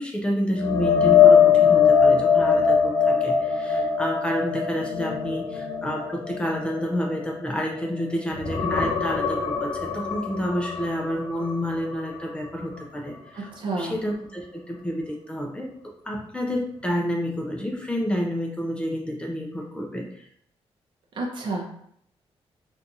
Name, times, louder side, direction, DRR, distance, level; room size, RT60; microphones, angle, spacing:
voice 1, 0.0-13.5 13.7-20.3, equal, 10° left, -1 dB, 0.4 m, -29 dB
sound 1, 0.6-8.0 8.3-12.2 12.6-12.8 16.1-16.2, left 7 dB, 55° left, 0.9 m, -21 dB
voice 2, 13.3-13.9 21.2-21.7, right 2 dB, 45° right, -1 dB, 0.6 m, -30 dB
2.6 x 2.3 x 3.9 m, 0.67 s
wide cardioid pair, 180°, 11 cm